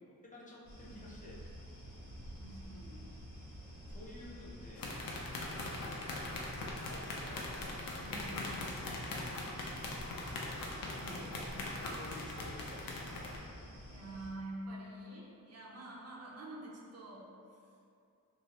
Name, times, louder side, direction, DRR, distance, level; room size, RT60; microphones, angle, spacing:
voice 1, 0.2-1.4 3.9-6.5 6.9-7.4 8.0-8.8 11.1-11.6 11.9-13.5, left 1 dB, 25° left, -5 dB, 0.6 m, -53 dB
sound 1, 0.6-14.3, equal, 55° left, 1.1 m, -50 dB
voice 2, 2.4-3.1 8.0-9.3 10.9-12.1 13.9-17.6, right 1 dB, 45° right, -3 dB, 0.5 m, -48 dB
sound 2, 4.8-13.4, left 2 dB, 75° left, 0.5 m, -41 dB
2.8 x 2.7 x 2.9 m, 2.5 s
cardioid pair, 85°, 35 cm